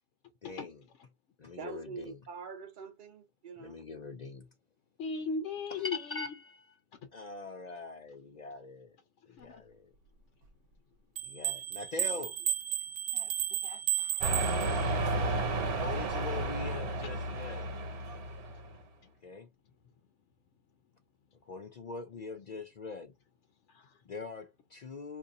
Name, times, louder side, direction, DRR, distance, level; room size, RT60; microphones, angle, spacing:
voice 1, 0.4-0.8 1.4-2.2 3.6-4.5 5.8-6.7 7.1-8.9 9.4-9.9 11.3-12.4 15.8-17.7 19.2-19.5 21.5-23.1 24.1-25.2, left 3 dB, 60° left, 0.4 m, -42 dB
voice 2, 1.6-3.8, right 5 dB, 50° right, 0.8 m, -45 dB
voice 3, 5.0-6.2 9.3-9.6 13.1-13.3 13.6-14.2 23.7-24.0, left 4 dB, 90° left, 1.0 m, -38 dB
sound 1, 11.2-15.1, right 10 dB, 85° right, 0.9 m, -33 dB
sound 2, 14.2-18.7, right 2 dB, 65° right, 1.3 m, -32 dB
2.6 x 2.6 x 3.6 m
omnidirectional pair, 1.2 m